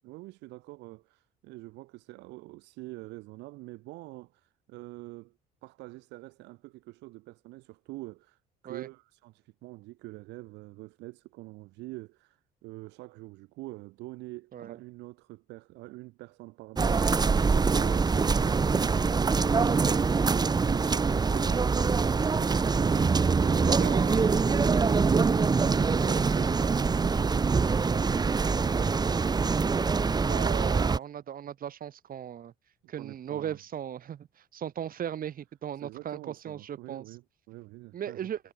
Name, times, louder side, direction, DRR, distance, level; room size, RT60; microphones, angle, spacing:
voice 1, 0.0-5.4 5.6-17.4 28.6-29.0 33.0-33.6 35.8-38.3, right 21 dB, 80° right, 2.6 m, -45 dB
sound 1, 16.8-31.0, right 4 dB, 25° right, 0.7 m, -24 dB
voice 2, 23.7-24.3 24.7-24.8 27.9-28.2 30.3-32.5 32.9-37.1 37.9-38.5, right 9 dB, 55° right, 2.1 m, -37 dB
supercardioid pair, 70°, 18 cm